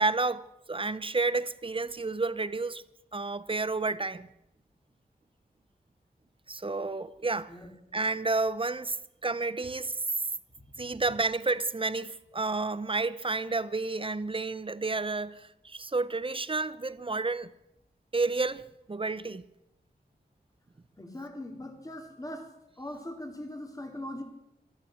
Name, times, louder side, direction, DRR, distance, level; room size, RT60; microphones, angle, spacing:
voice 1, 0.0-2.8 3.1-4.3 6.5-7.5 7.9-9.0 9.2-10.3 10.8-17.5 18.1-19.4, right 3 dB, 30° right, 0.8 m, -30 dB
voice 2, 21.0-22.5 22.8-24.2, left 1 dB, 20° left, 3.4 m, -40 dB
14.0 x 12.0 x 6.3 m
cardioid pair, 50°, 17 cm